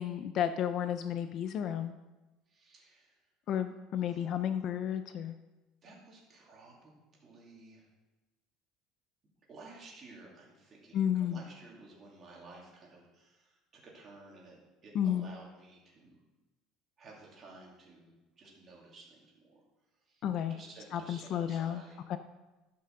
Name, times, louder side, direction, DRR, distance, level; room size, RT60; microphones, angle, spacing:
voice 1, 0.0-1.9 3.5-5.3 10.9-11.4 14.9-15.3 20.2-20.6 20.9-21.8 22.1-22.2, left 9 dB, 35° left, 10 dB, 0.4 m, -32 dB
voice 2, 2.5-3.2 4.1-4.4 5.8-7.9 9.5-14.6 14.8-16.2 17.0-19.6 20.1-22.0, right 3 dB, 25° right, -3 dB, 2.5 m, -54 dB
12.5 x 5.7 x 6.5 m, 1.1 s
cardioid pair, 180°, 0 cm